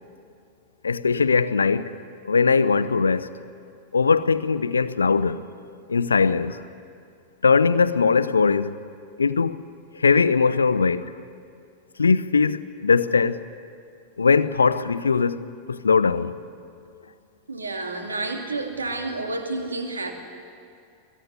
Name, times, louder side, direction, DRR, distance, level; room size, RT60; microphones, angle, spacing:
voice 1, 0.8-1.9 2.3-3.3 3.9-5.4 5.9-6.6 7.4-8.8 9.2-9.6 10.0-11.1 12.0-13.4 14.2-16.3, left 5 dB, 75° left, 0.7 m, -20 dB
voice 2, 17.5-20.1, right 2 dB, 75° right, 2.8 m, -30 dB
22.5 x 21.5 x 9.8 m
figure-of-eight pair, 90°, 0 cm